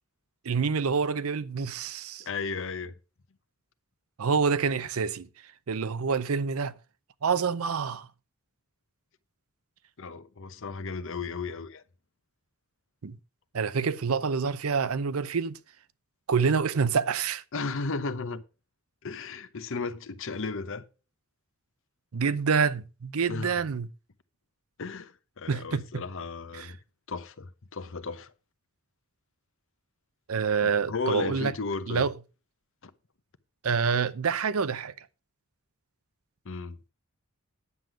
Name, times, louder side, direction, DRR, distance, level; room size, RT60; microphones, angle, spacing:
voice 1, 0.4-2.3 4.2-5.3 5.7-6.7 7.2-8.1 13.0-13.2 13.5-15.6 16.3-17.4 22.1-23.9 25.5-26.0 26.5-26.7 30.3-31.5 31.9-32.1 33.6-34.9, right 5 dB, 80° right, 0.6 m, -27 dB
voice 2, 2.2-2.9 10.0-11.8 17.5-18.4 19.0-20.8 23.3-23.6 24.8-26.8 27.1-28.3 30.6-32.1 32.8-32.9 36.4-36.8, left 4 dB, 65° left, 0.8 m, -35 dB
9.6 x 7.7 x 5.0 m
head